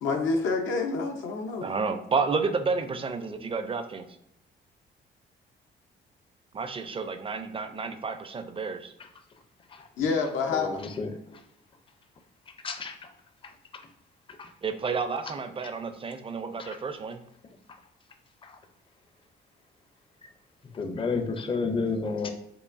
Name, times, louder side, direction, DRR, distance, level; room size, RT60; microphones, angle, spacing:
voice 1, 0.0-1.7 10.0-10.8, left 4 dB, 75° left, 4 dB, 0.7 m, -27 dB
voice 2, 1.6-4.1 6.5-8.9 14.6-17.2, right 4 dB, 25° right, 8 dB, 0.4 m, -30 dB
voice 3, 10.5-11.4 12.6-13.1 14.4-14.5 16.6-16.7 18.4-18.6 20.7-22.3, left 4 dB, 25° left, 7 dB, 0.5 m, -31 dB
4.6 x 2.6 x 2.5 m, 0.79 s
cardioid pair, 90°, 20 cm